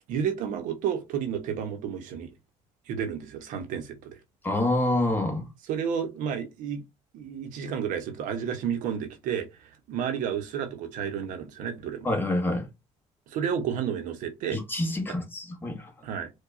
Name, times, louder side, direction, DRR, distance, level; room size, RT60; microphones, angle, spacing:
voice 1, 0.1-2.3 2.9-4.2 5.7-6.8 7.1-12.1 13.3-14.6 16.0-16.3, right 8 dB, 80° right, 0.8 m, -31 dB
voice 2, 4.4-5.5 12.0-12.7 14.5-15.9, left 1 dB, 15° left, 1.0 m, -27 dB
4.7 x 2.2 x 2.5 m
cardioid pair, 115°, 13 cm